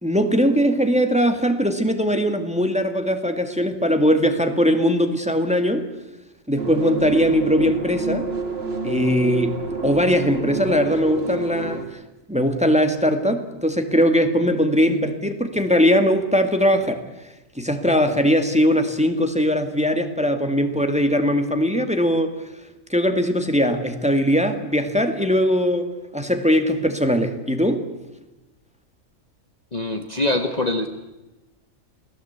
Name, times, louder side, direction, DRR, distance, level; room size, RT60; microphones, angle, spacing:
voice 1, 0.0-5.9 6.5-8.3 8.8-9.5 9.8-12.0 12.3-17.0 17.6-22.3 22.9-27.8, equal, 5° right, 7 dB, 2.0 m, -20 dB
sound 1, 6.6-11.8, right 4 dB, 45° right, 2.7 m, -29 dB
voice 2, 29.7-30.9, left 2 dB, 30° left, 6 dB, 1.5 m, -23 dB
28.5 x 19.0 x 8.3 m, 1.1 s
omnidirectional pair, 1.4 m